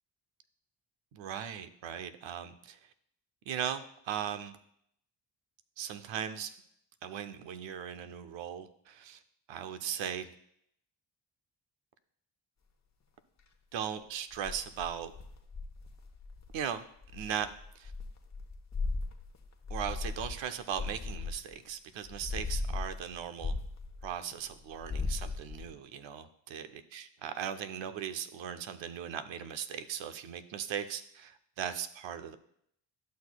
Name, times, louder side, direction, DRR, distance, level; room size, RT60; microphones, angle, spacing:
voice 1, 1.1-2.8 3.5-4.5 5.8-6.5 7.0-9.2 9.5-10.3 13.7-15.1 16.5-16.8 17.1-17.5 17.8-17.9 19.7-23.5 24.0-32.4, right 9 dB, 85° right, 11 dB, 0.7 m, -38 dB
sound 1, 14.3-16.6 17.0-21.6 22.0-24.3 24.7-25.7, left 3 dB, 35° left, 1.0 m, -37 dB
11.5 x 6.2 x 2.3 m, 0.70 s
cardioid pair, 75°, 44 cm